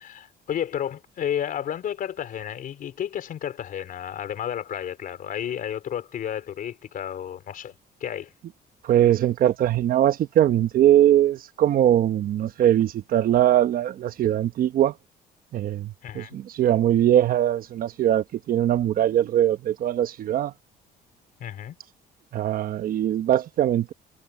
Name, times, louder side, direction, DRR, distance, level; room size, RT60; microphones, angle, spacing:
voice 1, 0.0-7.7 8.0-8.3 16.0-16.4 21.4-21.8, left 9 dB, 55° left, 4.5 m, -32 dB
voice 2, 8.8-14.9 15.5-20.5 22.3-23.9, right 11 dB, 60° right, 1.0 m, -21 dB
cardioid pair, 110°, 17 cm